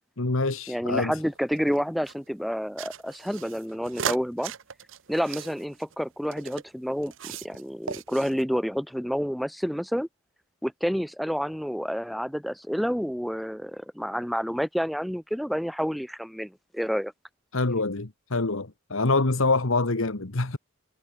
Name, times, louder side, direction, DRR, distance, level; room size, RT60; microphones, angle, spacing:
voice 1, 0.2-1.2 17.5-20.6, left 3 dB, 75° left, 1.5 m, -25 dB
voice 2, 0.7-4.5 5.1-10.1 10.6-17.1, equal, ahead, 0.8 m, -29 dB
sound 1, 1.2-2.1 2.8-6.6 7.0-7.6 7.9-8.4, right 7 dB, 65° right, 1.0 m, -37 dB
head